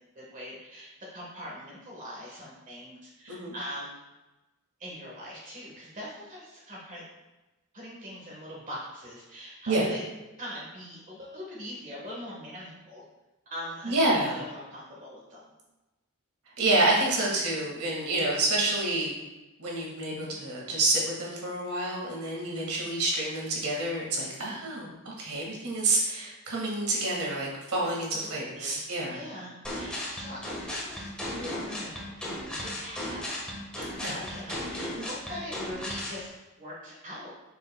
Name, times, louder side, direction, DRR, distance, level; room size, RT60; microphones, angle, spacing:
voice 1, 0.0-4.0 4.8-7.0 7.7-10.0 10.4-13.0 13.5-15.5 20.1-20.4 27.8-31.0 31.2-33.3 33.7-36.3 36.6-37.3, equal, 35° right, -5 dB, 1.4 m, -42 dB
voice 2, 13.8-14.4 16.6-19.1 19.6-29.2 34.0-34.1, right 2 dB, 80° right, -3 dB, 2.0 m, -28 dB
sound 1, 29.6-36.2, left 1 dB, 5° left, 1.4 m, -36 dB
6.7 x 6.6 x 2.3 m, 1.0 s
head